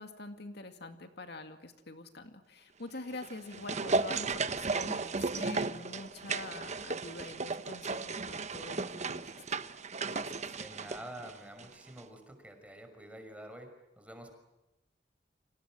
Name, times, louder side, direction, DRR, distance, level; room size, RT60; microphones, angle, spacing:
voice 1, 0.0-9.6 10.1-10.3, left 2 dB, 65° left, 7 dB, 2.2 m, -46 dB
sound 1, 3.1-11.7 12.0-12.1, right 3 dB, 40° right, 1.2 m, -35 dB
voice 2, 10.5-13.7 14.0-14.3, right 1 dB, 5° right, 5 dB, 5.9 m, -48 dB
29.5 x 26.0 x 7.7 m, 0.95 s
head